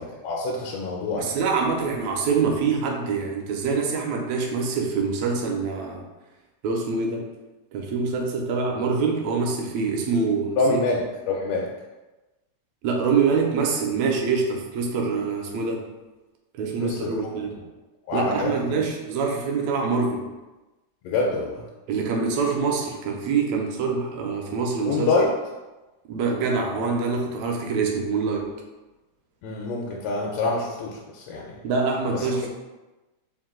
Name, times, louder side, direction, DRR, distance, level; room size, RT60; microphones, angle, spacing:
voice 1, 0.2-1.3 10.6-11.7 16.8-17.3 18.1-18.8 21.0-21.6 24.8-25.3 29.4-31.6 32.1-32.4, left 3 dB, 80° left, -2 dB, 1.6 m, -26 dB
voice 2, 1.2-6.0 6.6-7.3 7.7-10.8 12.8-15.8 16.6-17.6 18.1-20.3 21.9-25.1 26.1-28.5 31.6-32.5, right 4 dB, 80° right, 1 dB, 1.8 m, -25 dB
4.6 x 2.5 x 3.6 m, 1.1 s
omnidirectional pair, 3.3 m